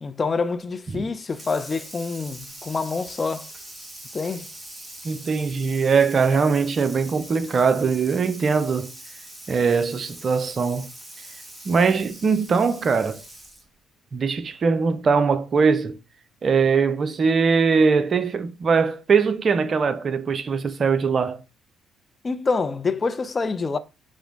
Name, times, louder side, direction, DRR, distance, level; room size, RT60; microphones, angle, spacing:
voice 1, 0.0-3.5 4.1-4.5 22.2-23.8, left 4 dB, 30° left, 0.4 m, -26 dB
Water tap faucet / Sink (filling or washing), 1.3-13.8, right 1 dB, 15° right, 1.2 m, -42 dB
voice 2, 5.0-8.9 9.5-10.9 11.7-13.2 14.1-16.0 16.4-21.4, right 5 dB, 40° right, 0.5 m, -21 dB
4.8 x 2.0 x 3.8 m
figure-of-eight pair, 45°, 0 cm